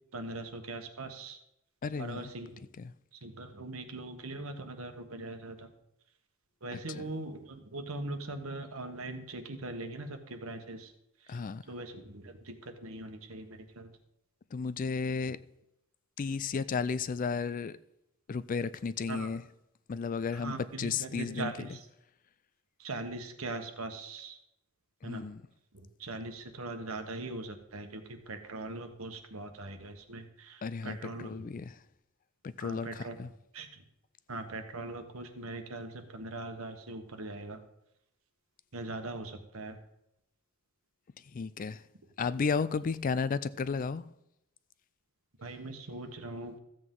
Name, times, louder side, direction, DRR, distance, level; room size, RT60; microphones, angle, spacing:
voice 1, 0.1-1.4 2.0-2.6 3.2-5.7 6.6-10.9 11.3-11.4 11.7-13.9 19.1-19.3 20.3-21.8 22.8-24.4 25.0-25.2 25.7-31.6 32.6-33.2 33.5-33.8 34.3-37.6 38.7-39.8 45.4-46.6, right 2 dB, 85° right, 1.3 m, -41 dB
voice 2, 1.8-2.3 2.8-2.9 6.7-7.1 11.3-11.6 14.5-15.4 16.2-17.8 18.3-19.4 19.9-21.7 25.0-25.4 30.6-31.8 32.4-33.3 41.3-41.8 42.2-44.1, left 5 dB, 40° left, 0.4 m, -33 dB
14.0 x 7.8 x 3.8 m
head